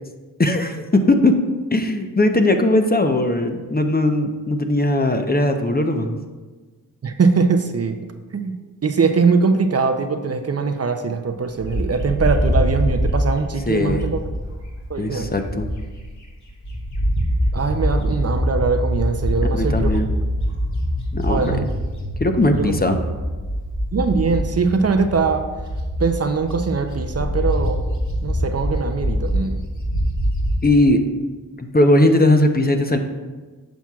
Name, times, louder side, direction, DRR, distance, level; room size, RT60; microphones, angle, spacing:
voice 1, 0.4-1.4 1.7-6.1 13.7-14.1 15.0-15.7 19.5-20.1 21.1-21.7 22.2-23.0 30.6-31.0 31.6-33.0, left 1 dB, 25° left, 5 dB, 0.7 m, -18 dB
voice 2, 7.0-8.0 8.3-14.2 14.9-15.3 17.5-19.9 21.3-21.7 22.6-22.8 23.9-25.5 26.0-27.8 28.2-29.6, right 4 dB, 45° right, 7 dB, 0.6 m, -21 dB
Bird, 11.6-16.1 16.5-30.7, equal, 55° left, 2.0 m, -24 dB
10.0 x 5.9 x 2.4 m, 1.3 s
cardioid pair, 45°, 35 cm